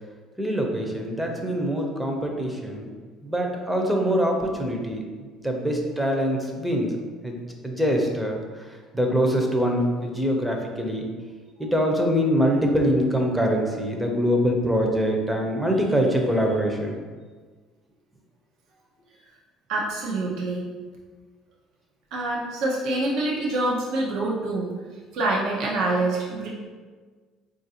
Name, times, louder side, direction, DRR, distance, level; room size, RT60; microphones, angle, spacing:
voice 1, 0.4-2.9 3.2-5.0 5.4-6.9 7.2-8.4 8.7-11.0 11.6-17.0, equal, 5° right, 1 dB, 0.6 m, -24 dB
voice 2, 19.7-20.6 22.1-24.7 25.1-26.5, right 2 dB, 75° right, -4 dB, 0.6 m, -26 dB
4.0 x 2.5 x 2.8 m, 1.5 s
cardioid pair, 100°, 0 cm